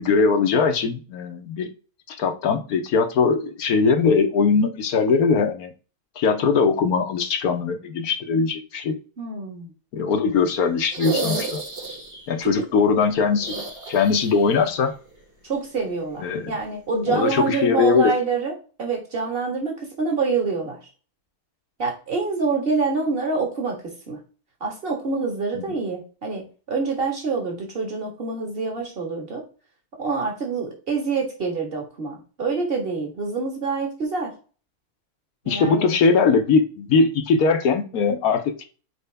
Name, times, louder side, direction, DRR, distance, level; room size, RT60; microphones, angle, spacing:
voice 1, 0.0-1.7 2.1-5.7 6.2-9.0 9.9-11.6 12.3-13.6 13.9-14.9 16.2-16.4 17.1-18.1 25.6-25.7 35.5-38.7, left 5 dB, 75° left, 6 dB, 1.3 m, -20 dB
voice 2, 9.2-9.7 12.4-12.5 15.4-18.5 18.8-20.8 21.8-24.2 24.6-29.4 29.9-34.3 35.4-36.0, right 4 dB, 40° right, 1 dB, 1.9 m, -26 dB
sound 1, 10.8-12.3 13.4-14.6 14.8-14.9 16.5-16.6, right 3 dB, 65° right, 3.8 m, -30 dB
6.7 x 4.7 x 3.4 m, 0.37 s
omnidirectional pair, 1.6 m